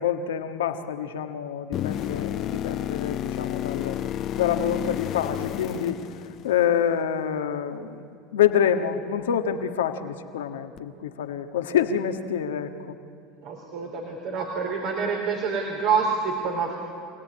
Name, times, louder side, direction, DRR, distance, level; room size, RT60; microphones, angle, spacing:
voice 1, 0.0-4.0 4.3-8.0 8.3-13.0, left 8 dB, 90° left, 7 dB, 1.5 m, -27 dB
sound 1, 1.7-6.8 10.8-10.9, left 11 dB, 50° left, 0.8 m, -31 dB
voice 2, 13.4-16.7, right 5 dB, 60° right, 1 dB, 3.8 m, -27 dB
26.5 x 17.5 x 9.9 m, 2.5 s
hypercardioid pair, 90°, 0 cm